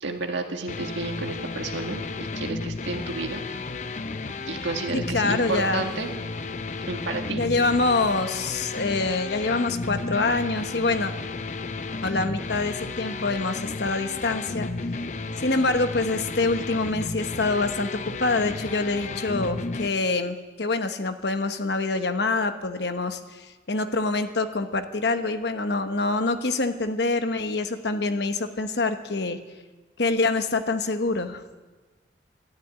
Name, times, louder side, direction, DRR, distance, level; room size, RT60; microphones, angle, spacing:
voice 1, 0.0-3.4 4.5-6.1 6.9-7.5, right 3 dB, 85° right, 4 dB, 1.7 m, -31 dB
sound 1, 0.7-19.9, left 3 dB, 40° left, 0.5 m, -33 dB
voice 2, 5.1-5.8 7.4-11.1 12.0-14.7 15.4-29.4 30.0-31.4, left 3 dB, 65° left, 8 dB, 1.1 m, -25 dB
12.5 x 12.0 x 9.3 m, 1.3 s
head